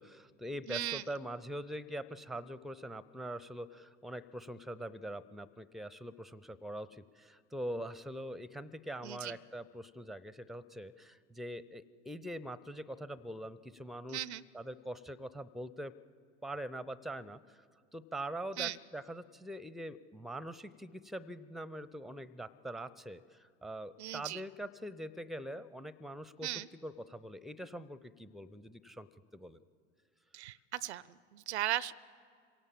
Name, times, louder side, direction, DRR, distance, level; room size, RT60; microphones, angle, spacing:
voice 1, 0.0-14.3 14.5-16.0 16.4-17.6 17.9-26.5 26.8-29.1 29.3-29.6, right 1 dB, ahead, 19 dB, 0.5 m, -43 dB
voice 2, 0.7-1.0 9.0-9.3 14.1-14.4 18.6-18.8 24.0-24.4 26.4-26.7 30.3-31.9, right 14 dB, 75° right, 22 dB, 0.5 m, -37 dB
26.0 x 17.5 x 7.3 m, 2.3 s
figure-of-eight pair, 70°, 34 cm